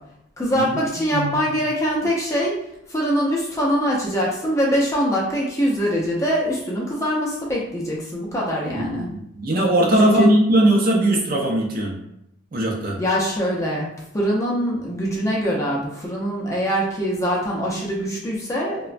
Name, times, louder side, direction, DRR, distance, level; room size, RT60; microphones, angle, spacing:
voice 1, 0.4-2.6 2.9-9.1 10.1-10.2 13.0-13.9 14.1-18.9, equal, 15° left, -4 dB, 0.4 m, -23 dB
voice 2, 1.1-1.6 8.7-12.0 12.5-13.0, right 1 dB, 45° right, 0 dB, 0.5 m, -19 dB
3.0 x 2.1 x 2.5 m, 0.80 s
head